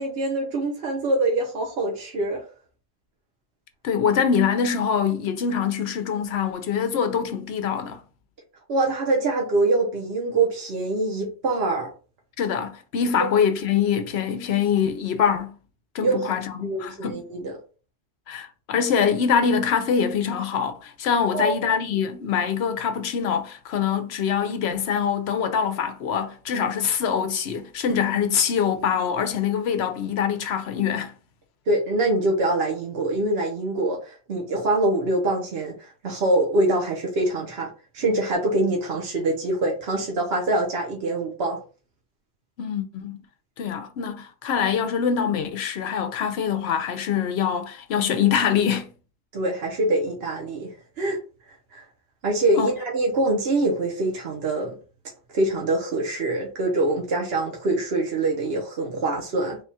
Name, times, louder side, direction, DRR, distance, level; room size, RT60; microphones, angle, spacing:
voice 1, 0.0-2.4 8.7-11.9 16.0-16.4 16.6-17.6 21.3-21.7 31.7-37.7 37.9-41.6 49.3-50.7 51.0-51.2 51.7-51.8 52.2-54.7 55.3-59.6, right 2 dB, 65° right, 1.1 m, -24 dB
voice 2, 3.8-8.0 12.4-15.6 15.9-17.2 18.3-31.1 42.6-43.2 43.6-48.9 52.6-52.7, left 7 dB, 70° left, 0.9 m, -24 dB
3.5 x 2.3 x 4.1 m
omnidirectional pair, 1.1 m